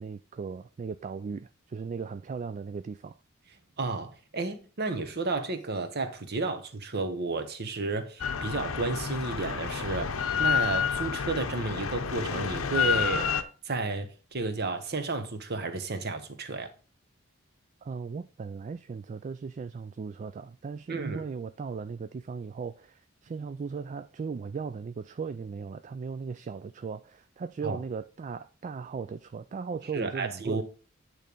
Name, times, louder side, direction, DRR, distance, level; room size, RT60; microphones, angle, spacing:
voice 1, 0.0-3.2 17.8-30.6, right 5 dB, 35° right, 0.3 m, -37 dB
voice 2, 3.8-13.3 13.6-16.7 20.9-21.2 27.6-27.8 29.9-30.6, right 3 dB, 50° right, 1.1 m, -32 dB
Drill, 8.2-13.4, left 7 dB, 85° left, 0.7 m, -29 dB
9.0 x 3.2 x 5.2 m
head